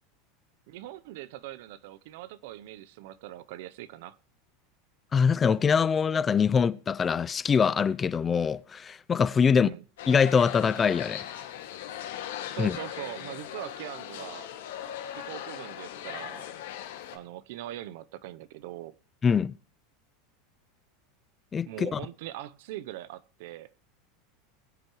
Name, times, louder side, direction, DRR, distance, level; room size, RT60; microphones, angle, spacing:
voice 1, 0.7-4.2 9.5-9.8 12.5-14.5 15.2-16.5 17.1-18.9 21.7-23.7, right 14 dB, 70° right, 0.8 m, -41 dB
voice 2, 5.1-9.7 10.1-11.2 12.6-12.7 19.2-19.5 21.5-22.0, left 6 dB, 20° left, 0.5 m, -23 dB
sound 1, 10.0-17.2, left 11 dB, 85° left, 2.1 m, -39 dB
21.0 x 7.8 x 3.1 m
supercardioid pair, 135°, 0 cm